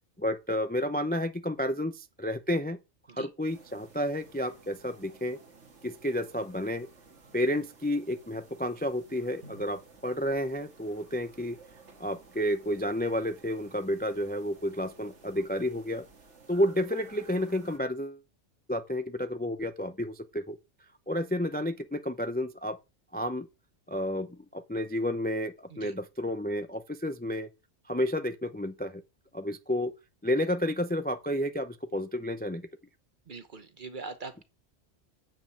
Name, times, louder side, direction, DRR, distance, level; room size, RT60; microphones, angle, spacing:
voice 1, 0.2-2.8 3.1-5.4 5.8-6.9 7.3-11.6 12.0-16.0 16.5-18.2 18.7-20.6 21.1-22.8 23.1-23.5 23.9-27.5 27.9-29.0 29.3-29.9 30.2-32.6, left 1 dB, 10° left, 0.5 m, -31 dB
sound 1, 3.4-17.8, right 3 dB, 75° right, 1.9 m, -55 dB
voice 2, 33.3-34.4, right 4 dB, 45° right, 1.1 m, -42 dB
9.0 x 5.2 x 7.0 m
omnidirectional pair, 1.2 m